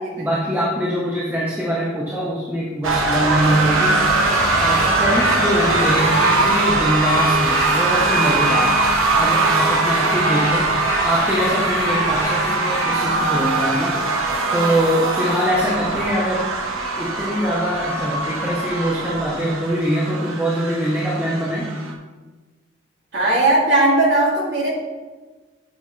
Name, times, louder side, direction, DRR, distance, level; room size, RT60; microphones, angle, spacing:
voice 1, 0.2-4.3 4.6-8.8 9.2-10.7 11.0-16.5 16.7-21.8, equal, 10° right, -5 dB, 1.1 m, -23 dB
sound 1, 2.8-21.9, right 3 dB, 90° right, 1.3 m, -21 dB
sound 2, 3.6-12.9, left 1 dB, 15° left, 2.1 m, -29 dB
voice 2, 23.1-24.7, right 2 dB, 60° right, -4 dB, 2.7 m, -18 dB
9.5 x 7.6 x 3.4 m, 1.3 s
head